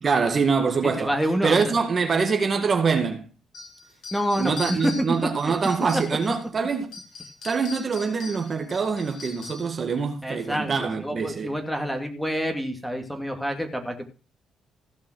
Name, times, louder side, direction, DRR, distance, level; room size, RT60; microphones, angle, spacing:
voice 1, 0.0-1.1 1.4-3.3 4.4-6.9 7.4-11.5, right 5 dB, 40° right, 1.9 m, -24 dB
voice 2, 0.8-1.7 4.1-4.9 5.2-5.5 10.2-14.0, equal, ahead, 2.5 m, -28 dB
sound 1, 3.5-6.4 6.8-9.8, left 4 dB, 60° left, 7.4 m, -41 dB
16.0 x 5.7 x 6.3 m
cardioid pair, 90°, 0 cm